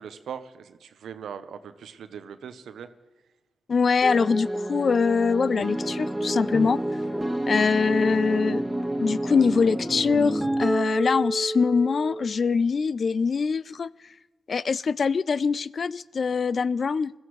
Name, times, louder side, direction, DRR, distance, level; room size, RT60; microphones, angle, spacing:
voice 1, 0.0-2.9, right 7 dB, 80° right, 11 dB, 0.9 m, -40 dB
voice 2, 3.7-6.8 7.5-8.6 9.0-13.9 14.5-17.1, left 5 dB, 60° left, 20 dB, 0.4 m, -23 dB
sound 1, 4.0-12.5, right 1 dB, 10° right, 1.6 m, -29 dB
21.0 x 14.0 x 3.2 m, 1.2 s
supercardioid pair, 45°, 0 cm